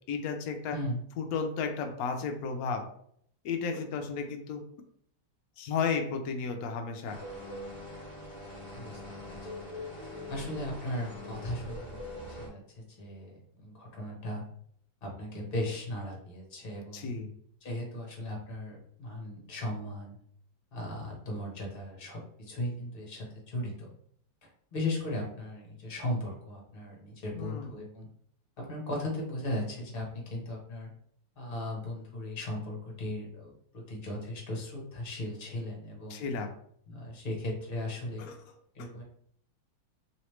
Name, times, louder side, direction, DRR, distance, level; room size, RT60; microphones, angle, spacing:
voice 1, 0.1-0.8 1.2-2.8 3.4-4.6 5.6-7.2 16.9-17.3 27.3-27.7 36.1-36.5 38.2-38.4 38.8-38.9, left 5 dB, 80° left, 5 dB, 0.8 m, -33 dB
sound 1, 7.0-12.5, left 1 dB, 35° right, 1.2 m, -42 dB
voice 2, 8.7-9.5 10.3-14.4 15.0-17.1 17.6-20.2 20.7-23.9 24.4-28.1 28.6-30.9 31.4-36.3 36.9-38.2 38.7-39.0, left 1 dB, 40° left, -2 dB, 0.9 m, -37 dB
3.2 x 3.1 x 3.1 m, 0.65 s
omnidirectional pair, 2.1 m